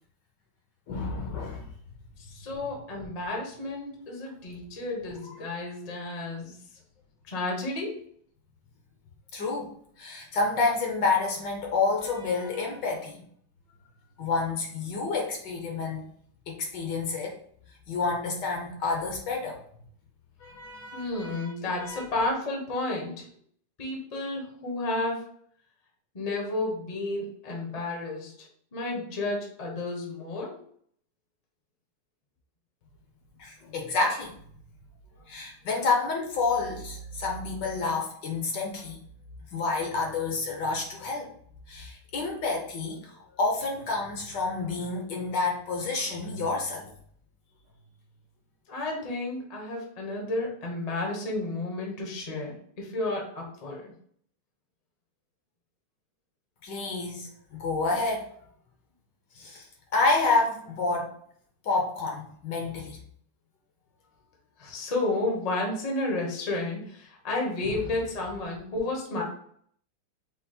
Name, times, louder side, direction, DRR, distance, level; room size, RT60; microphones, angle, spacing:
voice 1, 0.9-1.7 9.3-9.7 10.0-13.2 14.2-16.0 16.5-17.4 17.9-19.6 20.4-21.5 21.8-22.1 33.4-34.3 35.3-39.0 39.5-41.3 41.7-46.9 56.6-58.3 59.3-61.1 61.6-63.0 67.6-67.8, left 3 dB, 65° left, 0 dB, 1.4 m, -29 dB
voice 2, 2.2-6.6 7.3-8.0 20.9-23.3 23.8-25.3 26.1-30.6 48.7-53.9 64.6-69.2, left 2 dB, 30° left, -1 dB, 0.7 m, -32 dB
5.7 x 2.1 x 4.2 m, 0.62 s
omnidirectional pair, 2.3 m